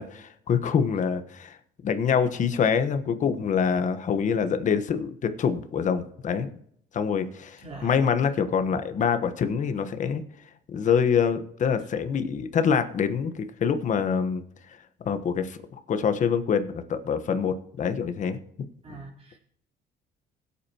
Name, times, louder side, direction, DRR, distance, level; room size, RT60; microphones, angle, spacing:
voice 1, 0.0-1.6 1.8-6.5 6.9-10.2 10.7-14.4 15.0-15.6 15.9-18.4, left 6 dB, 45° left, 10 dB, 1.2 m, -25 dB
voice 2, 7.6-8.0 18.8-19.4, right 3 dB, 35° right, -4 dB, 3.7 m, -42 dB
21.0 x 8.5 x 3.0 m, 0.69 s
cardioid pair, 110°, 17 cm